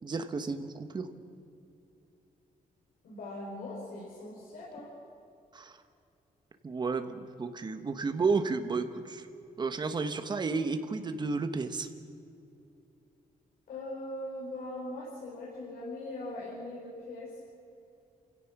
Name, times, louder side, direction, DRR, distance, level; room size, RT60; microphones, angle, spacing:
voice 1, 0.0-1.1 5.5-5.8 6.6-9.3 9.6-11.9, right 4 dB, 30° right, 8 dB, 1.3 m, -32 dB
voice 2, 3.0-4.9 13.7-17.4, left 1 dB, 90° left, -4 dB, 5.1 m, -40 dB
28.5 x 16.5 x 6.1 m, 2.7 s
wide cardioid pair, 155°, 14 cm